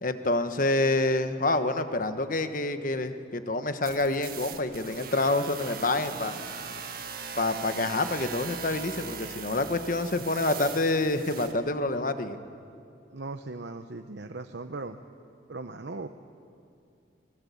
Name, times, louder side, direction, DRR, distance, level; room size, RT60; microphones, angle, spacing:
voice 1, 0.0-6.3 7.4-12.4, left 2 dB, 45° left, 9 dB, 1.3 m, -27 dB
sound 1, 3.8-11.5, right 6 dB, 55° right, 1.9 m, -40 dB
voice 2, 13.1-15.0 15.5-16.1, right 3 dB, 70° right, 7 dB, 0.8 m, -38 dB
24.0 x 21.5 x 8.5 m, 2.6 s
head